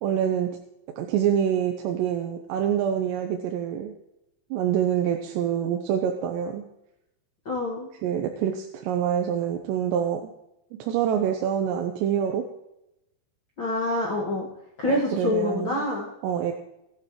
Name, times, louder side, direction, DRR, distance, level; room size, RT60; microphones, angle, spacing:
voice 1, 0.0-0.6 1.0-3.9 4.5-6.6 8.0-10.3 10.8-12.4 14.8-15.9 16.2-16.5, right 9 dB, 80° right, 3 dB, 3.0 m, -26 dB
voice 2, 7.4-7.9 13.6-14.5 14.8-16.1, left 2 dB, 50° left, -4 dB, 1.5 m, -26 dB
18.5 x 9.1 x 3.1 m, 0.85 s
omnidirectional pair, 5.1 m